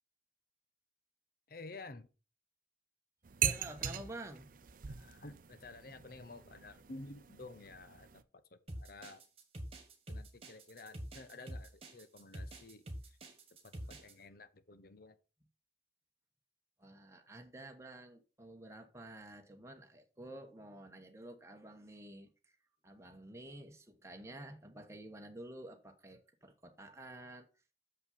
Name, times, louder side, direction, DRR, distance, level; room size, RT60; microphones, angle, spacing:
voice 1, 1.5-2.1 4.9-9.2 10.1-13.2 14.0-15.2, left 2 dB, 55° left, 0.9 m, -52 dB
sound 1, 3.2-8.2, right 9 dB, 50° right, 0.6 m, -40 dB
voice 2, 3.4-4.5 13.9-14.0 16.8-22.6 22.8-27.5, right 1 dB, 15° right, 1.1 m, -50 dB
sound 2, 8.7-14.1, right 1 dB, 35° right, 1.6 m, -46 dB
6.9 x 5.6 x 5.5 m
head